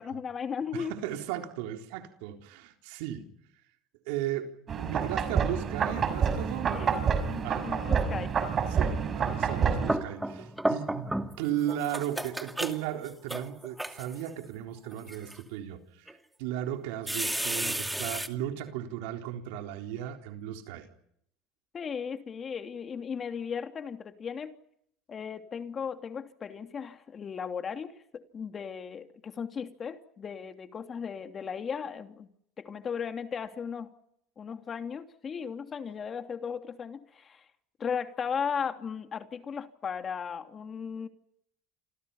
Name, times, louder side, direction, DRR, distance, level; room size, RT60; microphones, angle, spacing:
voice 1, 0.0-1.0 6.7-6.9 7.3-8.3 21.7-24.5 25.1-32.3 32.6-33.9 34.4-37.4 37.8-41.1, left 6 dB, 35° left, 3.0 m, -36 dB
voice 2, 0.7-3.3 4.1-7.7 8.7-20.9, right 11 dB, 75° right, 3.9 m, -36 dB
sound 1, 4.7-10.0, right 6 dB, 35° right, 5.9 m, -28 dB
sound 2, 9.5-11.4 11.7-14.3 14.9-15.4 16.1-16.2 17.1-18.3, right 1 dB, 5° right, 2.4 m, -32 dB
29.0 x 28.0 x 5.7 m
supercardioid pair, 100°, 0 cm